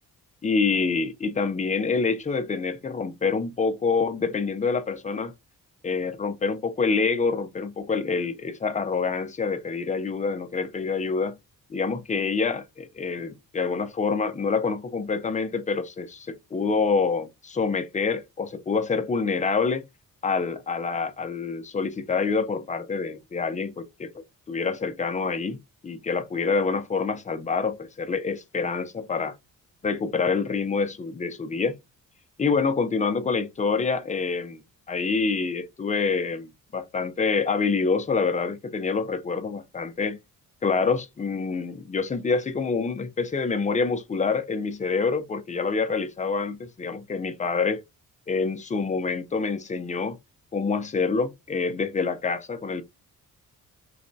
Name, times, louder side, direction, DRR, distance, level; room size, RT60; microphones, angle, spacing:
voice 1, 0.4-5.3 5.8-11.4 11.7-19.8 20.2-25.6 25.8-29.4 29.8-31.8 32.4-34.6 34.9-40.2 40.6-47.8 48.3-50.2 50.5-52.8, left 4 dB, 20° left, 0.4 m, -26 dB
4.0 x 2.1 x 2.6 m
wide cardioid pair, 130°, 34 cm